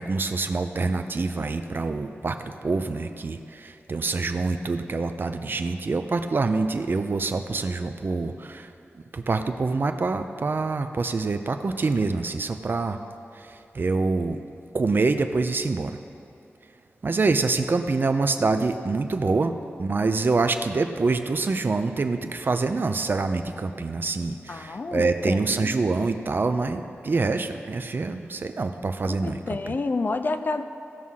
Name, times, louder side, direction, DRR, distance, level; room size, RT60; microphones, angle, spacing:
voice 1, 0.0-8.7 9.1-13.0 13.4-14.4 14.7-16.0 17.0-19.5 19.8-29.8, right 3 dB, 45° right, 8 dB, 0.6 m, -26 dB
voice 2, 24.5-25.8 29.1-30.6, left 3 dB, 45° left, 9 dB, 0.5 m, -29 dB
15.5 x 6.2 x 5.6 m, 2.6 s
wide cardioid pair, 110°, 5 cm